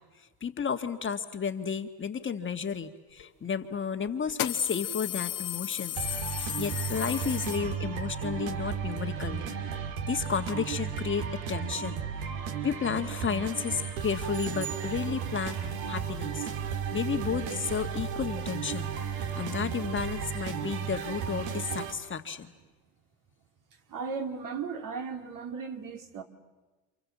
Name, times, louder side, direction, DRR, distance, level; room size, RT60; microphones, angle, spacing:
voice 1, 0.2-5.9 6.3-9.5 10.1-12.3 12.6-15.6 15.9-16.5 16.9-22.5, left 6 dB, 30° left, 1.8 m, -32 dB
sound 1, 3.2-3.3 4.3-8.1, left 13 dB, 55° left, 1.5 m, -35 dB
sound 2, 5.9-21.9, right 7 dB, 75° right, 2.5 m, -34 dB
sound 3, 14.3-15.8, right 7 dB, 35° right, 4.0 m, -43 dB
voice 2, 23.9-26.2, right 5 dB, 50° right, 3.2 m, -36 dB
29.5 x 27.5 x 7.4 m
supercardioid pair, 90°, 41 cm